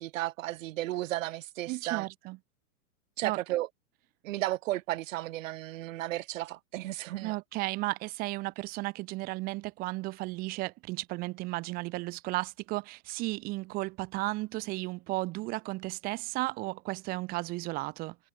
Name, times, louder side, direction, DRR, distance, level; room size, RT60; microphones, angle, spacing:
voice 1, 0.0-2.1 3.2-3.7 4.2-7.4, right 16 dB, 55° right, 1.9 m, -34 dB
voice 2, 1.7-2.4 3.2-3.4 7.2-18.2, right 21 dB, 20° right, 0.6 m, -34 dB
hypercardioid pair, 150°, 45 cm